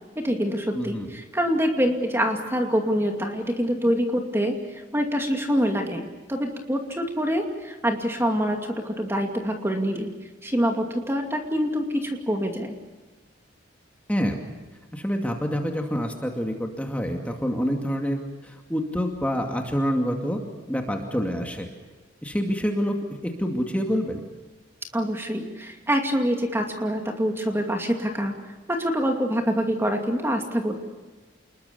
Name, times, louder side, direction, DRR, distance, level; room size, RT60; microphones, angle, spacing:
voice 1, 0.2-10.1 10.4-12.7 24.9-28.3 28.7-30.8, equal, 10° right, 3 dB, 2.5 m, -25 dB
voice 2, 0.7-1.1 14.1-14.4 14.9-20.4 20.7-21.7 22.2-24.2, equal, 5° left, 2 dB, 2.4 m, -27 dB
28.5 x 21.0 x 7.0 m, 1.2 s
head